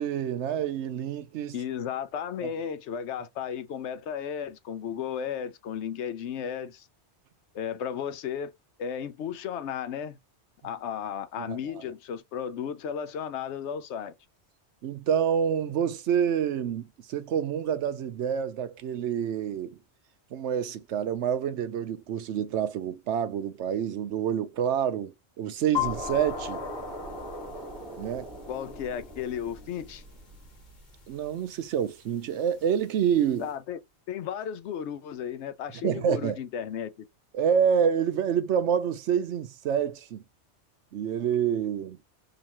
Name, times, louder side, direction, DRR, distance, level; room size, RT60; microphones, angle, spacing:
voice 1, 0.0-1.6 11.5-11.6 14.8-19.8 20.3-26.6 28.0-28.3 31.1-33.5 35.8-36.4 37.3-40.2 40.9-42.0, right 8 dB, 85° right, 0.9 m, -27 dB
voice 2, 1.5-6.9 7.5-8.5 8.8-10.2 10.6-14.1 28.5-30.0 33.4-33.8 34.1-37.1, left 8 dB, 80° left, 0.9 m, -34 dB
sound 1, 25.7-33.6, left 13 dB, 45° left, 1.2 m, -40 dB
sound 2, 25.8-31.0, equal, 15° right, 1.5 m, -40 dB
3.9 x 2.6 x 2.9 m
omnidirectional pair, 1.2 m